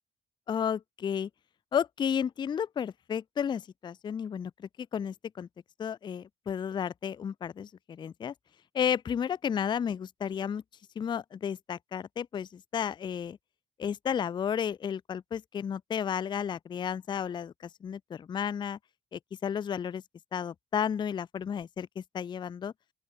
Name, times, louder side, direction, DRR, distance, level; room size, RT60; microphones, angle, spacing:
voice 1, 0.5-1.3 1.7-5.5 5.8-8.3 8.7-10.6 11.0-13.4 13.8-18.8 19.1-20.0 20.3-22.7, left 8 dB, 25° left, 0.3 m, -32 dB
open air
cardioid pair, 145°, 18 cm